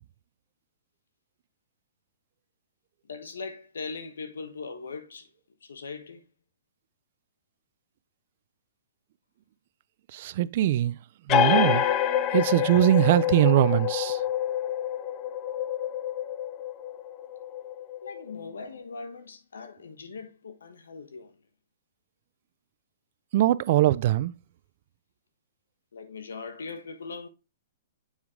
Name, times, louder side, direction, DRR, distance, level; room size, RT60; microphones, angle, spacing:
voice 1, 3.0-5.3 5.6-6.2 18.0-21.4 25.9-27.3, left 4 dB, 85° left, 1.2 m, -40 dB
voice 2, 10.1-11.0 11.3-11.8 12.3-14.2 23.3-24.3, right 13 dB, 50° right, 0.4 m, -22 dB
sound 1, 11.3-18.5, left 11 dB, 30° left, 0.6 m, -27 dB
7.2 x 4.8 x 3.5 m
hypercardioid pair, 140°, 0 cm